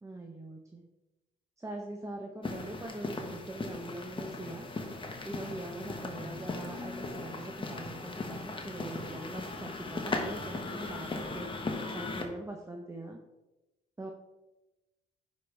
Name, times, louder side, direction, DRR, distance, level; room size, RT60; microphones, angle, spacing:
voice 1, 0.0-0.8 1.6-4.7 5.2-11.6 11.9-13.2 14.0-14.1, right 2 dB, 15° right, 2 dB, 1.0 m, -42 dB
sound 1, 2.4-12.2, left 3 dB, 25° left, 1.4 m, -38 dB
9.4 x 5.3 x 3.5 m, 1.0 s
cardioid pair, 90°, 20 cm